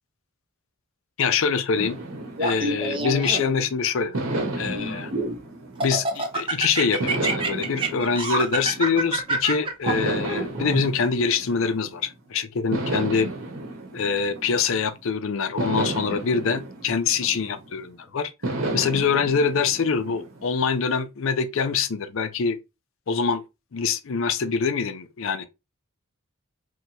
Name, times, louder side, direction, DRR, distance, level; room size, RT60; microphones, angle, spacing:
voice 1, 1.2-2.0 2.4-4.2 4.6-5.1 5.8-13.3 13.9-18.3 18.7-22.6 23.1-23.4 23.7-25.5, left 5 dB, 65° left, 0.5 m, -24 dB
sound 1, 1.7-3.5 4.1-6.4 7.0-9.3 9.9-12.1 12.7-15.0 15.6-17.8 18.4-20.7, right 2 dB, 70° right, 0.9 m, -32 dB
Laughter, 2.4-3.7 4.3-5.4 5.8-10.8, right 2 dB, 25° right, 0.6 m, -27 dB
2.8 x 2.2 x 4.0 m
head